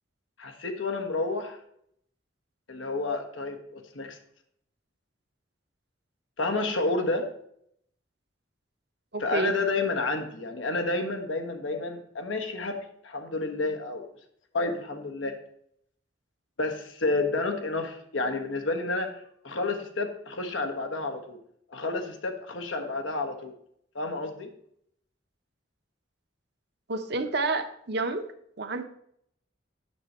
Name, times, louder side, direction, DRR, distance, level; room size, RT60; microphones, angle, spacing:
voice 1, 0.4-1.6 2.7-4.2 6.4-7.3 9.2-14.1 14.5-15.4 16.6-19.1 19.4-21.4 21.7-23.5 23.9-24.5, left 3 dB, 85° left, 5 dB, 1.3 m, -30 dB
voice 2, 9.1-9.5 26.9-28.3 28.6-28.8, right 3 dB, 60° right, 7 dB, 0.9 m, -29 dB
8.7 x 6.7 x 4.4 m, 0.69 s
head